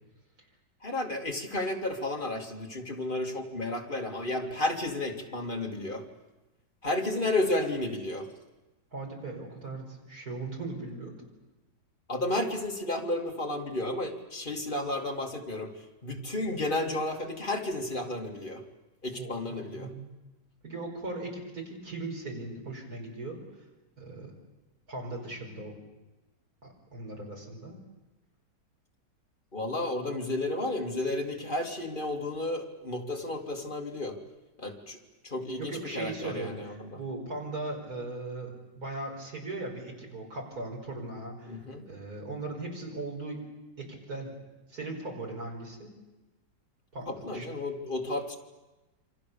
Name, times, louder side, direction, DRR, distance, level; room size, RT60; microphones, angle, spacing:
voice 1, 0.8-6.0 6.8-8.3 12.1-15.7 16.0-18.6 19.0-19.9 29.5-34.2 34.6-35.0 35.2-37.0 41.5-41.9 47.1-48.4, left 2 dB, 25° left, 1 dB, 2.6 m, -32 dB
voice 2, 8.9-11.1 19.2-20.2 20.6-23.4 24.0-24.3 24.9-25.8 26.6-27.8 35.7-43.4 43.8-44.3 44.7-45.9 46.9-47.5, right 2 dB, 55° right, 1 dB, 5.6 m, -38 dB
28.0 x 24.5 x 7.0 m, 1.1 s
omnidirectional pair, 1.9 m